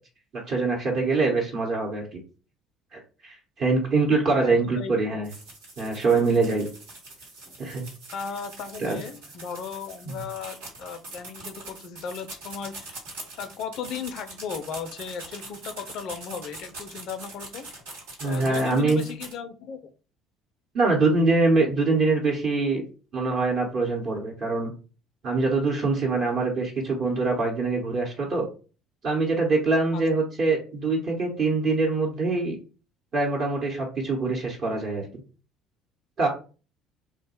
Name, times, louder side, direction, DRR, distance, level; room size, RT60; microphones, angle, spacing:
voice 1, 0.5-2.2 2.9-5.3 5.8-6.7 7.6-7.9 8.8-9.0 10.1-10.2 18.2-19.0 20.7-22.8 23.1-24.7 25.2-28.5 29.0-32.6 33.1-35.1 36.2-36.3, right 3 dB, 50° right, -1 dB, 0.9 m, -24 dB
voice 2, 4.3-4.9 8.1-13.0 13.4-17.7 18.2-19.9 29.9-30.0, left 6 dB, 55° left, 9 dB, 0.4 m, -36 dB
sound 1, 5.2-19.3, right 2 dB, 75° right, 1.1 m, -43 dB
3.0 x 2.2 x 4.2 m, 0.36 s
figure-of-eight pair, 60°, 0 cm